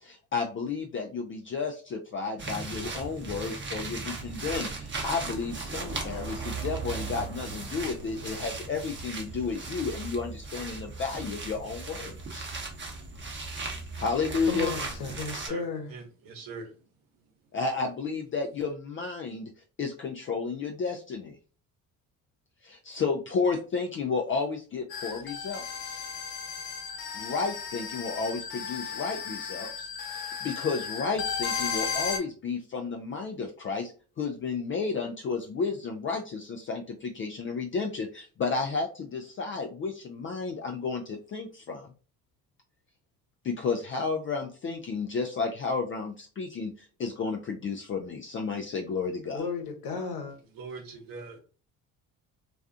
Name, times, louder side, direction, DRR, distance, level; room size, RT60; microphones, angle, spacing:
voice 1, 0.0-12.5 14.0-14.7 17.5-19.5 19.8-21.4 22.6-26.1 27.1-29.9 30.2-33.9 34.2-41.9 43.4-46.7 47.0-49.5, left 4 dB, 30° left, 0.4 m, -32 dB
sound 1, 2.4-15.5, right 3 dB, 25° right, 0.8 m, -37 dB
voice 2, 14.4-16.0 49.3-50.4, left 4 dB, 60° left, 0.9 m, -34 dB
voice 3, 15.2-15.6 15.9-16.7 50.6-51.4, right 4 dB, 55° right, 0.9 m, -42 dB
sound 2, 24.9-32.2, left 6 dB, 85° left, 0.6 m, -35 dB
2.4 x 2.3 x 2.5 m
hypercardioid pair, 65°, 41 cm